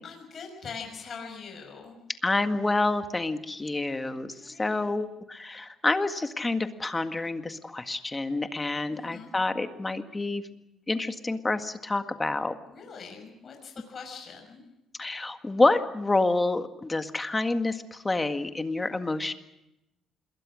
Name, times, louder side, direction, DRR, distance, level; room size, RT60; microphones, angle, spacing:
voice 1, 0.0-2.0 4.4-4.9 8.9-9.3 12.7-14.6, left 5 dB, 40° left, 2 dB, 6.1 m, -43 dB
voice 2, 2.2-10.4 10.9-12.6 15.0-19.4, left 2 dB, 15° left, 8 dB, 1.8 m, -28 dB
27.0 x 21.5 x 6.4 m, 0.91 s
cardioid pair, 125°, 0 cm